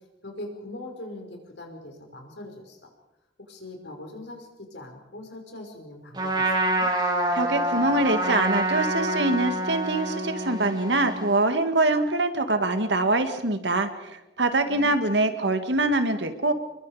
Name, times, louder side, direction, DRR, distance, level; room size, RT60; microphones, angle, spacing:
voice 1, 0.2-2.9 3.4-6.9 14.7-15.6, left 1 dB, 85° left, 3 dB, 5.7 m, -41 dB
Trumpet, 6.1-11.4, right 1 dB, 25° right, 4.3 m, -26 dB
voice 2, 7.3-16.5, right 2 dB, 80° right, 8 dB, 2.1 m, -24 dB
28.5 x 22.0 x 5.1 m, 0.99 s
head